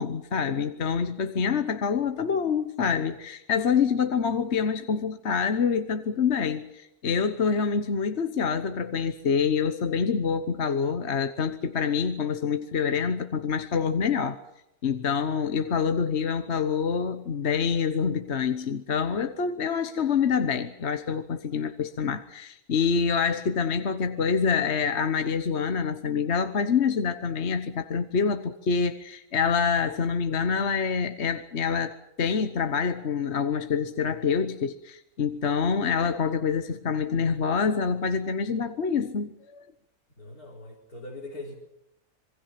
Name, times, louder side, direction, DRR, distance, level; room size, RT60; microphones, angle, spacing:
voice 1, 0.0-14.4 14.8-39.6, left 6 dB, 50° left, 1.3 m, -26 dB
voice 2, 40.2-41.5, left 2 dB, 85° left, 4.6 m, -41 dB
27.0 x 22.5 x 5.9 m
omnidirectional pair, 1.5 m